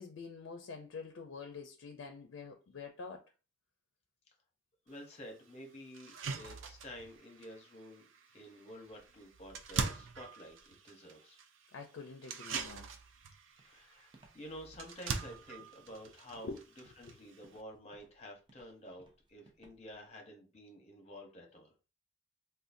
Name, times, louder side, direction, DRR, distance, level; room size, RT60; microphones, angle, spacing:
voice 1, 0.0-3.2 11.7-12.9 16.4-16.6, left 4 dB, 85° left, 0.4 m, -46 dB
voice 2, 4.9-8.1 8.3-11.4 13.6-16.6 17.0-21.7, equal, 35° left, 0.8 m, -50 dB
sound 1, 4.9-5.0 5.5-5.6 5.9-17.6, right 5 dB, 90° right, 0.4 m, -43 dB
Walk footsteps, 13.6-20.0, right 2 dB, 25° right, 0.5 m, -65 dB
3.7 x 2.2 x 2.5 m
head